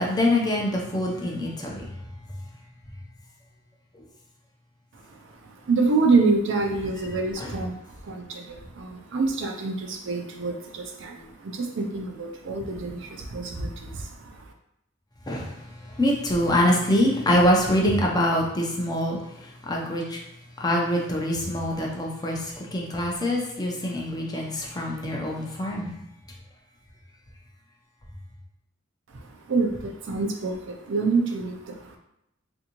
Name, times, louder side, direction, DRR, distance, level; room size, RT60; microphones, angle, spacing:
voice 1, 0.0-1.8 7.4-7.5 15.3-15.5 16.0-19.2 19.7-20.2 20.6-22.4 22.7-25.9, left 1 dB, 20° left, -1 dB, 0.5 m, -24 dB
voice 2, 4.9-14.5 29.2-32.0, right 3 dB, 65° right, 2 dB, 0.5 m, -27 dB
3.4 x 2.6 x 2.9 m, 0.84 s
head